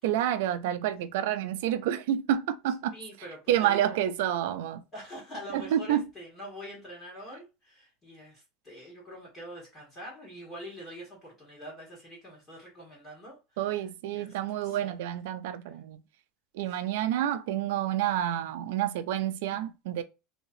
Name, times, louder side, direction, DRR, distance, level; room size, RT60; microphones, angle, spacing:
voice 1, 0.0-2.9 3.5-4.8 5.5-6.0 13.6-16.0 16.5-20.0, right 11 dB, 65° right, 0.4 m, -29 dB
voice 2, 2.9-4.0 4.9-15.2 16.6-16.8, equal, 20° left, 1.4 m, -45 dB
3.2 x 2.8 x 2.7 m
supercardioid pair, 175°, 0 cm